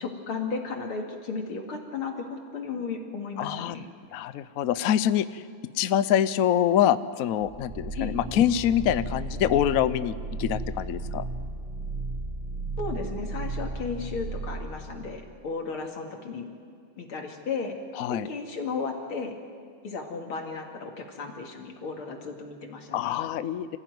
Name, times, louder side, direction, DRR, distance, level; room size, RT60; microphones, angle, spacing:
voice 1, 0.0-3.9 7.9-8.2 12.8-16.4 17.0-17.7 18.1-19.3 19.8-23.2, left 4 dB, 90° left, 2 dB, 3.1 m, -34 dB
voice 2, 3.4-3.8 4.1-5.4 5.8-10.1 10.4-11.2 18.0-18.3 22.9-23.7, left 10 dB, 70° left, 14 dB, 0.8 m, -25 dB
sound 1, 7.4-15.2, right 2 dB, 20° right, 5.9 m, -35 dB
26.0 x 15.5 x 9.4 m, 2.2 s
omnidirectional pair, 2.3 m